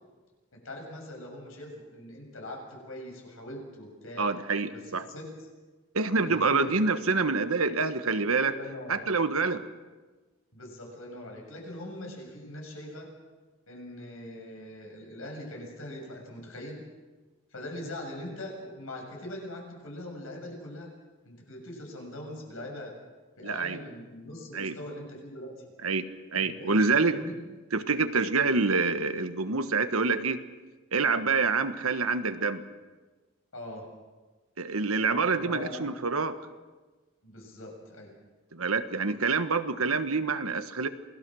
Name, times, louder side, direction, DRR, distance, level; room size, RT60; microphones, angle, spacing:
voice 1, 0.6-4.3 4.7-4.8 5.1-5.3 6.2-6.7 8.4-9.1 10.5-13.1 13.7-16.8 17.5-20.9 21.2-23.0 23.4-25.5 26.4-26.7 27.0-27.4 33.5-33.9 35.2-35.9 37.2-38.1, left 1 dB, 70° left, 1 dB, 7.2 m, -41 dB
voice 2, 4.2-5.0 5.9-8.6 8.9-9.6 23.4-23.8 24.5-24.7 25.8-26.1 26.3-27.2 27.7-30.4 30.9-32.6 34.6-36.4 38.5-40.9, right 4 dB, 80° right, 9 dB, 1.4 m, -26 dB
28.0 x 19.0 x 6.4 m, 1.3 s
head